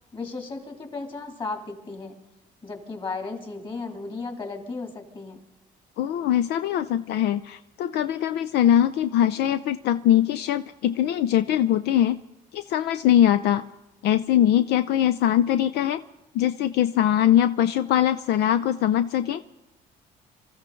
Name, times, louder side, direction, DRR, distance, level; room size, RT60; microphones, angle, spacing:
voice 1, 0.1-2.1 2.6-5.4, left 3 dB, 30° left, 4 dB, 3.0 m, -35 dB
voice 2, 6.0-12.2 12.5-13.6 14.0-16.0 16.3-19.4, left 11 dB, 75° left, 12 dB, 0.5 m, -22 dB
25.0 x 14.0 x 3.8 m, 0.93 s
cardioid pair, 110°, 17 cm